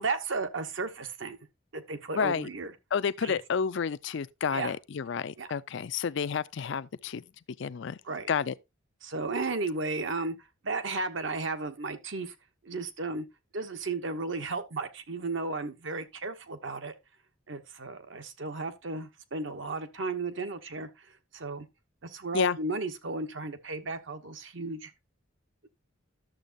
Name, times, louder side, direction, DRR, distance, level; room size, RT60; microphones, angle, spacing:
voice 1, 0.0-1.4 1.7-2.7 3.2-3.4 4.5-4.7 5.4-5.5 8.0-8.3 9.0-10.3 10.6-12.3 12.6-13.3 13.5-16.9 17.5-20.9 21.3-21.7 22.0-24.9, right 3 dB, 65° right, 1.0 m, -34 dB
voice 2, 2.1-2.5 2.9-7.2 7.6-8.0 8.3-8.5 22.3-22.6, left 6 dB, 60° left, 0.4 m, -30 dB
11.5 x 7.2 x 2.6 m
head